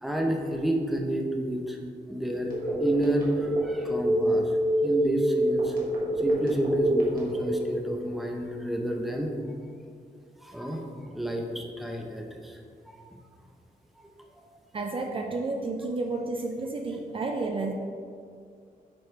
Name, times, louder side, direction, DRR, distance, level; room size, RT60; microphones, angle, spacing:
voice 1, 0.0-1.8 2.1-2.5 2.8-4.5 4.8-5.8 6.2-9.3 10.4-10.9 11.1-13.0 14.0-14.4, right 1 dB, ahead, 1 dB, 0.7 m, -30 dB
Telephone, 2.5-7.7, right 1 dB, 70° right, 1.7 m, -25 dB
voice 2, 14.7-17.7, right 3 dB, 35° right, 2 dB, 0.4 m, -31 dB
9.3 x 4.8 x 3.3 m, 2.3 s
wide cardioid pair, 165°, 15 cm